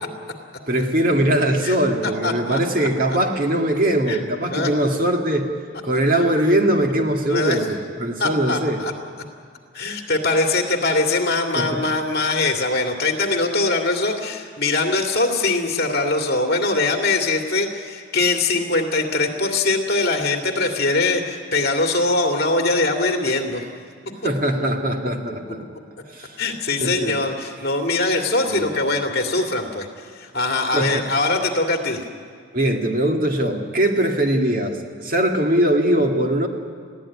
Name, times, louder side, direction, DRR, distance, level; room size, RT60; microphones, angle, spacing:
voice 1, 0.7-5.5 5.8-8.8 11.5-11.9 24.2-25.6 26.1-26.4 26.8-27.1 28.5-28.8 30.7-31.0 32.5-36.5, right 1 dB, 45° right, 3 dB, 2.0 m, -21 dB
voice 2, 2.0-2.6 4.1-4.2 4.5-4.7 7.3-7.6 8.2-8.9 9.7-23.6 26.4-29.9 30.2-32.0, left 3 dB, 50° left, 3 dB, 2.3 m, -22 dB
21.0 x 15.5 x 9.8 m, 2.1 s
head